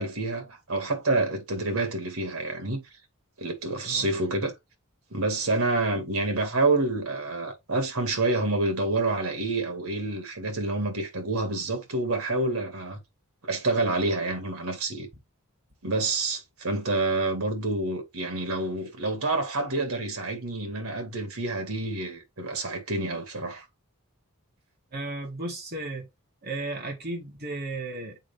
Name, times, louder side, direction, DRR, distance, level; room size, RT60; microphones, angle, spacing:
voice 1, 0.0-2.8 3.4-4.5 5.1-13.0 13.4-15.1 15.8-23.6, right 2 dB, 80° right, 2.1 m, -28 dB
voice 2, 24.9-26.1 26.4-28.2, right 2 dB, 50° right, 2.3 m, -34 dB
7.0 x 5.1 x 3.5 m
head